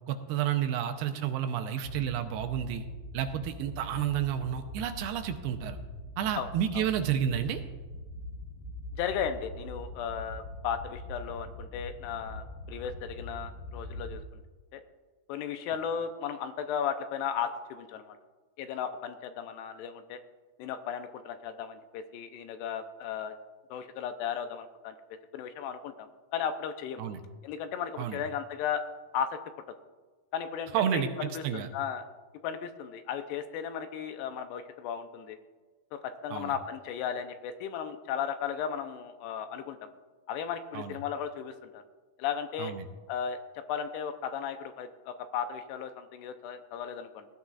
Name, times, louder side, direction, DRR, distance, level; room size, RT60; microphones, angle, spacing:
voice 1, 0.1-2.8 3.1-5.8 6.2-7.6 27.0-27.2 28.0-28.2 30.7-31.7 36.3-36.5 40.7-41.0 42.6-42.9, right 9 dB, 80° right, 7 dB, 2.5 m, -30 dB
sound 1, 1.8-14.2, left 1 dB, 55° left, 2.5 m, -43 dB
voice 2, 9.0-14.4 14.7-14.8 15.3-18.2 18.6-20.2 20.6-23.3 23.7-25.0 25.3-27.0 27.4-28.8 29.1-29.3 30.3-32.0 32.4-35.4 35.9-39.9 40.3-41.8 42.2-42.7 43.1-43.4 43.7-47.3, left 8 dB, 85° left, 8 dB, 2.7 m, -35 dB
19.5 x 12.5 x 2.4 m, 1.3 s
omnidirectional pair, 4.9 m